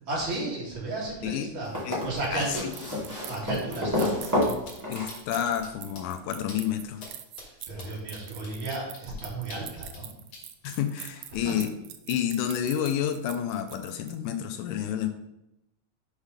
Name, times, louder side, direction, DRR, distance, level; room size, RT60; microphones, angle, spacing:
voice 1, 0.1-1.7 2.0-2.7 3.2-4.2 7.4-10.2 11.4-11.5, right 2 dB, 45° right, -5 dB, 2.7 m, -33 dB
sound 1, 1.6-5.7 7.0-7.1, left 1 dB, 5° right, 1.8 m, -30 dB
sound 2, 1.8-14.4, right 11 dB, 85° right, 1.4 m, -44 dB
sound 3, 3.7-3.8 4.0-4.1 4.4-4.7 5.1-5.7 6.0-6.1 6.5-6.6 7.0-7.1 7.4-10.0 10.3-10.7, left 3 dB, 60° left, 2.8 m, -45 dB
voice 2, 4.9-7.1 10.6-11.7 12.1-15.1, left 9 dB, 85° left, 7 dB, 2.1 m, -29 dB
6.5 x 4.9 x 5.0 m, 0.85 s
omnidirectional pair, 3.5 m